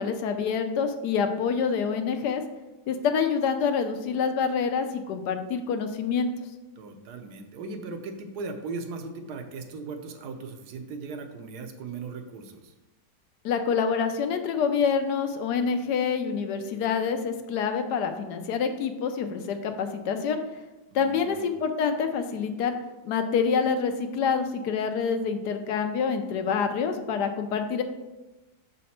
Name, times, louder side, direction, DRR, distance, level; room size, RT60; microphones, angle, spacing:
voice 1, 0.0-2.4 2.9-6.3 13.4-20.4 20.9-22.7 23.0-27.8, left 6 dB, 85° left, 7 dB, 1.2 m, -27 dB
voice 2, 6.8-12.7 20.9-21.5, right 4 dB, 80° right, 5 dB, 1.3 m, -38 dB
6.5 x 4.2 x 4.2 m, 1.1 s
omnidirectional pair, 1.7 m